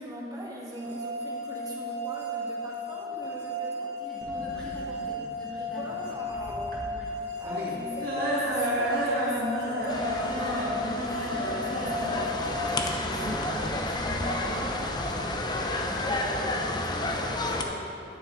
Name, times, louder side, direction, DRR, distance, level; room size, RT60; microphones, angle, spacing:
voice 1, 0.0-3.9 5.6-6.8 7.4-18.0, equal, 20° right, -4 dB, 1.6 m, -41 dB
sound 1, 0.8-13.7, left 2 dB, 75° right, 1.1 m, -35 dB
voice 2, 3.8-6.0 6.9-7.1 15.8-16.1, right 1 dB, 5° left, -6 dB, 1.2 m, -44 dB
sound 2, 4.2-14.2, right 1 dB, 60° right, 1.9 m, -32 dB
sound 3, 9.9-17.6, left 2 dB, 25° left, 0.7 m, -31 dB
10.0 x 9.3 x 4.0 m, 2.8 s
head